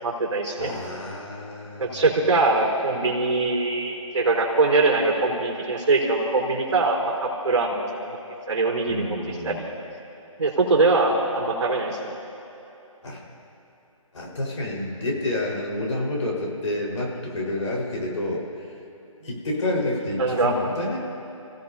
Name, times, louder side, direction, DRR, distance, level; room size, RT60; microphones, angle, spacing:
voice 1, 0.0-0.7 1.8-8.2 8.5-9.7 10.4-12.1 20.2-20.5, right 3 dB, 55° right, -1 dB, 3.8 m, -22 dB
voice 2, 0.6-2.0 8.9-9.6 13.0-13.2 14.1-18.5 19.2-21.0, left 1 dB, 60° left, -2 dB, 4.5 m, -29 dB
30.0 x 16.0 x 2.8 m, 2.8 s
figure-of-eight pair, 160°, 18 cm